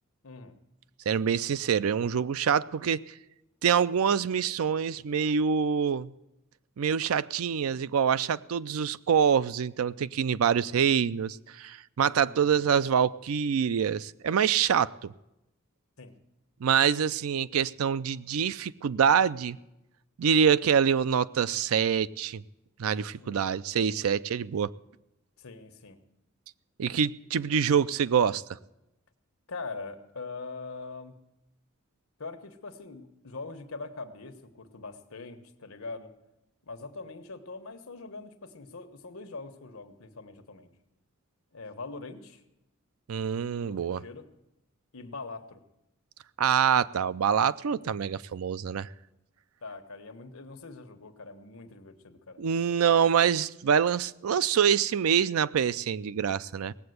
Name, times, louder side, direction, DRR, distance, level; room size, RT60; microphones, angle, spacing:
voice 1, 0.2-0.5 12.0-12.8 16.0-16.1 23.2-23.4 25.4-26.0 29.5-31.1 32.2-36.1 36.6-40.7 41.5-42.4 43.6-44.3 44.9-45.6 49.6-52.4, left 3 dB, 85° left, 7 dB, 1.2 m, -42 dB
voice 2, 1.1-3.0 3.6-6.1 6.8-15.1 16.6-19.6 20.2-22.4 22.8-24.7 26.8-28.4 43.1-44.0 46.4-48.9 52.4-56.7, right 7 dB, 85° right, 16 dB, 0.4 m, -25 dB
18.0 x 7.7 x 8.0 m, 0.90 s
head